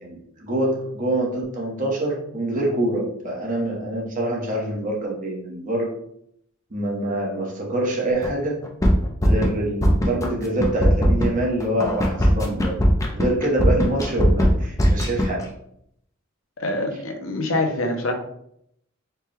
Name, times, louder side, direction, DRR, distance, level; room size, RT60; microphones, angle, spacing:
voice 1, 0.0-5.9 6.7-8.6 9.2-12.8 13.1-15.4, right 1 dB, 40° right, -2 dB, 1.0 m, -25 dB
sound 1, 8.2-8.3 8.6-9.5 9.8-10.3 10.6-15.4, equal, 15° left, 0.5 m, -18 dB
voice 2, 16.6-18.1, left 2 dB, 75° left, 4 dB, 0.7 m, -25 dB
4.6 x 2.3 x 3.3 m, 0.73 s
head